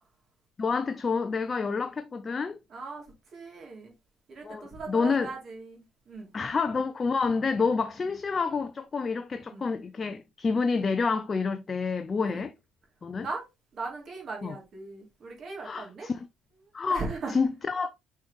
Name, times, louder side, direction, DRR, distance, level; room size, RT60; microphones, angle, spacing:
voice 1, 0.6-2.6 4.4-5.3 6.3-12.5 13.0-13.3 14.4-14.6 15.6-16.3 16.7-17.9, left 4 dB, 30° left, 0.6 m, -28 dB
voice 2, 2.7-3.0 3.3-3.9 4.3-6.3 9.5-9.7 12.2-12.5 13.2-13.4 13.7-16.1 16.9-17.4, right 3 dB, 40° right, 2.9 m, -38 dB
6.2 x 4.4 x 3.4 m
figure-of-eight pair, 55°, 0 cm